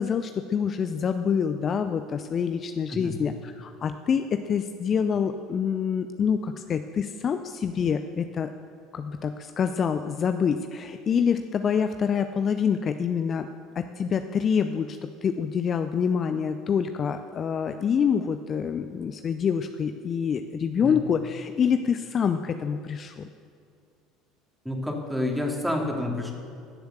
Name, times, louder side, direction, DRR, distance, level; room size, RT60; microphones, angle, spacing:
voice 1, 0.0-8.5 8.9-13.5 13.8-23.3, left 7 dB, 35° left, 8 dB, 0.5 m, -26 dB
voice 2, 24.6-26.3, left 1 dB, 5° right, 1 dB, 2.6 m, -29 dB
16.0 x 8.0 x 6.8 m, 2.3 s
figure-of-eight pair, 65°, 0 cm